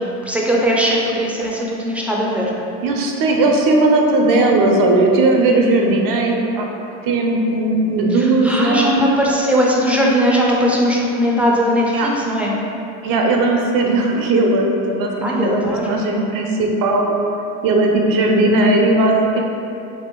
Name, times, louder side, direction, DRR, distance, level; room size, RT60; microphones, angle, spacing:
voice 1, 0.2-2.5 8.1-12.5 15.2-16.0, equal, 5° right, -4 dB, 0.4 m, -19 dB
voice 2, 2.8-6.7 7.0-8.9 11.9-12.1 13.0-17.2 17.6-19.4, right 2 dB, 55° right, 1 dB, 0.6 m, -17 dB
2.9 x 2.7 x 2.9 m, 2.7 s
hypercardioid pair, 75°, 40 cm